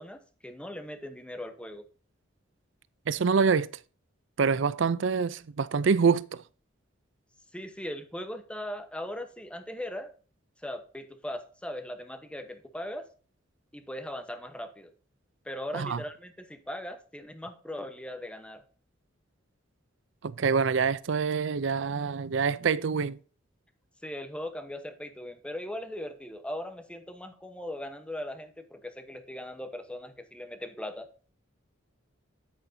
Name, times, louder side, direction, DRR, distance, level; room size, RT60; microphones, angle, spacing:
voice 1, 0.0-1.8 7.5-10.1 10.6-13.1 13.7-14.9 15.4-18.6 24.0-31.1, left 1 dB, 5° left, 1.0 m, -39 dB
voice 2, 3.1-3.7 4.4-6.4 15.7-16.0 20.2-23.2, right 5 dB, 65° right, 0.5 m, -26 dB
9.5 x 8.9 x 2.7 m
head